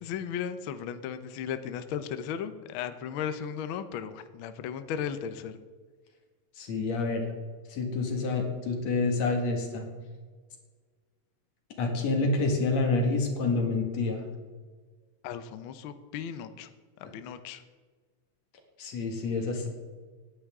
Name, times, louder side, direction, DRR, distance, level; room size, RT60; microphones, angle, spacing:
voice 1, 0.0-5.6 15.2-16.7 17.0-17.6, left 8 dB, 85° left, 10 dB, 1.1 m, -36 dB
voice 2, 6.6-7.3 7.7-9.9 11.8-14.2 18.8-19.7, left 3 dB, 65° left, 3 dB, 3.0 m, -28 dB
18.5 x 10.0 x 3.6 m, 1.5 s
omnidirectional pair, 3.3 m